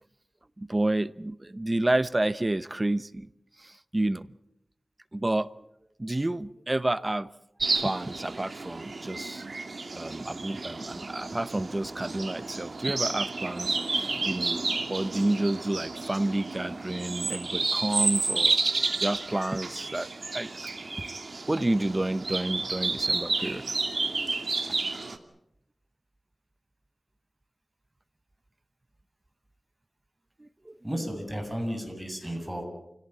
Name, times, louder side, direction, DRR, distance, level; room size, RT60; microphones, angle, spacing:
voice 1, 0.6-3.3 3.6-4.3 5.1-5.5 6.0-7.3 7.7-9.5 9.9-14.6 14.9-20.5 21.5-23.6 24.7-24.8 30.4-30.7, right 1 dB, 25° right, 16 dB, 0.9 m, -30 dB
sound 1, 7.6-25.2, right 3 dB, 60° right, 2.3 m, -31 dB
voice 2, 30.8-32.6, equal, 5° right, 4 dB, 7.6 m, -33 dB
28.5 x 17.5 x 8.5 m, 0.80 s
wide cardioid pair, 60°, 0 cm